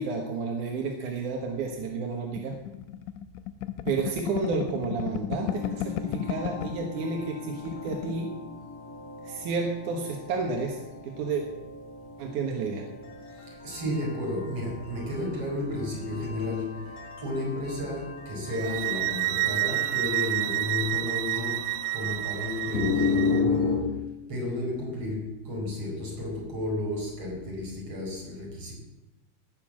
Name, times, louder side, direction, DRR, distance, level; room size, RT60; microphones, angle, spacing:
voice 1, 0.0-2.6 3.9-8.3 9.2-10.8 11.0-11.4 12.2-12.8, right 4 dB, 65° right, 1 dB, 2.1 m, -31 dB
sound 1, 2.4-6.9 7.2-7.3 7.6-8.2, left 11 dB, 85° left, 3.0 m, -34 dB
sound 2, 5.5-23.8, left 5 dB, 65° left, 4.7 m, -35 dB
voice 2, 13.3-23.9 24.3-28.7, left 1 dB, 30° right, -2 dB, 5.6 m, -33 dB
sound 3, 18.5-23.4, right 16 dB, 90° right, 2.3 m, -29 dB
18.0 x 6.9 x 7.5 m, 1.0 s
omnidirectional pair, 5.2 m